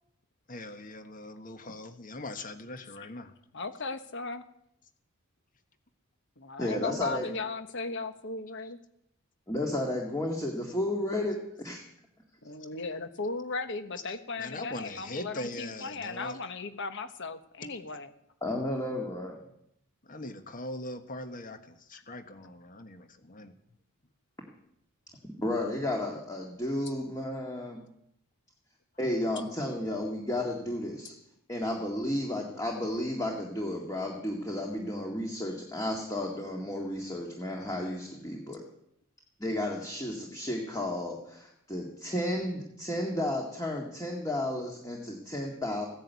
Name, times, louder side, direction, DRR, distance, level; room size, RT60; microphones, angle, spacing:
voice 1, 0.5-3.3 14.1-16.4 17.7-17.8 20.0-23.5, left 1 dB, 40° left, 8 dB, 1.4 m, -41 dB
voice 2, 3.5-4.4 6.4-8.8 12.4-18.1, left 3 dB, 55° left, 10 dB, 1.3 m, -36 dB
voice 3, 6.6-7.3 9.5-11.8 18.4-19.4 25.4-27.8 29.0-31.1 31.5-38.6 39.4-45.9, left 1 dB, 15° left, 0 dB, 2.1 m, -32 dB
16.0 x 10.5 x 8.3 m, 0.75 s
head